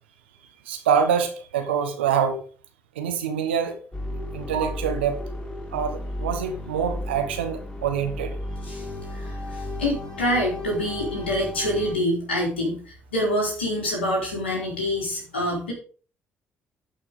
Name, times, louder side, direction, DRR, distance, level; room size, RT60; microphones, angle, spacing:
voice 1, 0.7-2.4 3.0-3.8 4.3-5.2 5.7-8.4, right 7 dB, 85° right, 7 dB, 1.3 m, -25 dB
sound 1, 3.9-12.0, left 1 dB, 20° left, 3.3 m, -34 dB
voice 2, 9.1-15.7, left 1 dB, 90° left, -1 dB, 3.6 m, -26 dB
11.5 x 5.8 x 5.1 m, 0.40 s
hypercardioid pair, 45°, 6 cm